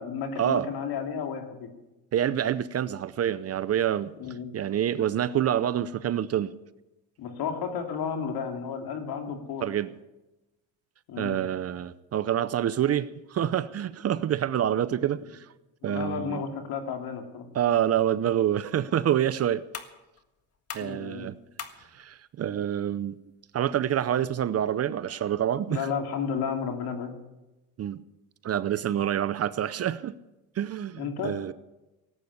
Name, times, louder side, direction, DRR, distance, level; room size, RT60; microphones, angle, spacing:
voice 1, 0.0-1.7 4.2-4.5 7.2-9.6 11.1-11.4 15.8-17.5 20.8-21.2 25.7-27.1 31.0-31.3, left 6 dB, 60° left, 4 dB, 3.0 m, -32 dB
voice 2, 2.1-4.1 4.5-6.5 9.6-9.9 11.2-15.5 15.8-16.4 17.5-19.6 20.7-21.4 21.9-23.2 23.5-25.9 27.8-28.0 28.4-30.1 30.6-31.5, right 10 dB, 40° right, 16 dB, 0.6 m, -27 dB
sound 1, 18.2-25.2, left 6 dB, 35° left, 1.7 m, -48 dB
18.0 x 8.6 x 8.1 m, 1.0 s
cardioid pair, 100°, 40 cm